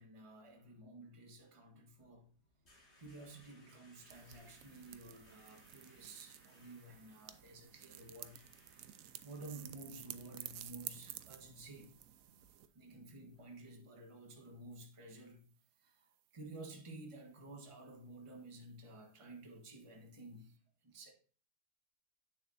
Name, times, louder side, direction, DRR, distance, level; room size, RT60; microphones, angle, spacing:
voice 1, 0.0-2.3 3.0-8.4 9.2-11.9 12.7-15.4 15.8-16.1 16.3-20.6 20.8-21.1, right 2 dB, 20° right, 1.2 m, -53 dB
sound 1, 1.9-13.5, left 1 dB, 35° left, 3.5 m, -69 dB
Plastic burn, 4.1-12.7, right 12 dB, 70° right, 0.8 m, -52 dB
8.9 x 6.9 x 2.7 m
omnidirectional pair, 1.9 m